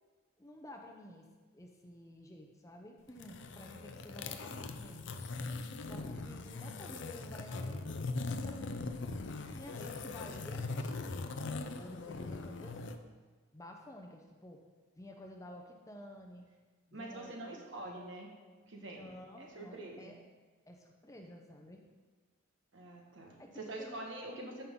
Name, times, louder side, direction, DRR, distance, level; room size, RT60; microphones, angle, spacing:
voice 1, 0.4-1.2 1.5-5.2 5.8-8.2 8.4-8.7 9.5-12.8 13.5-14.6 15.0-16.5 16.9-17.7 18.9-20.2 20.7-21.8 23.4-24.0, left 1 dB, 15° left, 2 dB, 0.7 m, -52 dB
sound 1, 3.1-13.0, left 3 dB, 60° left, 0.6 m, -40 dB
voice 2, 16.9-18.3 18.6-19.1 19.4-20.2 22.7-24.7, right 2 dB, 60° right, 0 dB, 1.5 m, -45 dB
14.0 x 5.6 x 3.8 m, 1.4 s
head